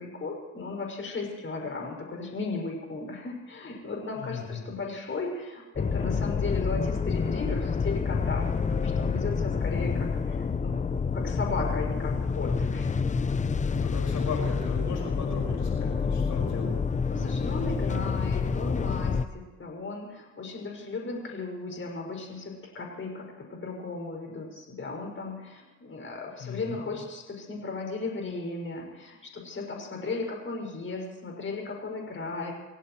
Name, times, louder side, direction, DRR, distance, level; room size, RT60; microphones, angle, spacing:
voice 1, 0.0-10.8 11.1-12.9 17.1-32.5, left 3 dB, 40° left, 0 dB, 6.4 m, -36 dB
voice 2, 4.1-4.7 13.8-16.8 26.4-26.9, left 5 dB, 70° left, 0 dB, 5.7 m, -35 dB
sound 1, 5.8-19.3, left 5 dB, 25° left, 0.7 m, -28 dB
27.0 x 16.5 x 3.2 m, 1.2 s
cardioid pair, 90°, 30 cm